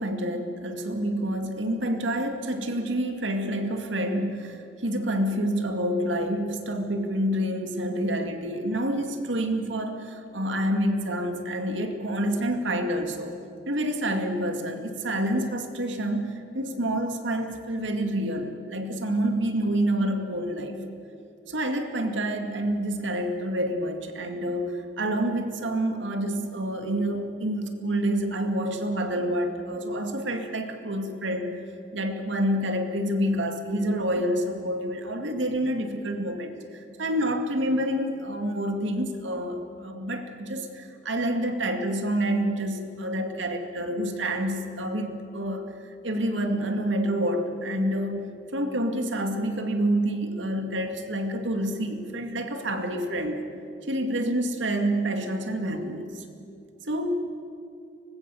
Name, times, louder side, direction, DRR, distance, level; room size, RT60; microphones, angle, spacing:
voice 1, 0.0-13.4 13.7-20.8 21.5-31.6 31.9-53.4 53.9-56.2 56.9-57.2, right 1 dB, 80° right, 5 dB, 2.3 m, -28 dB
24.5 x 20.5 x 7.1 m, 2.6 s
head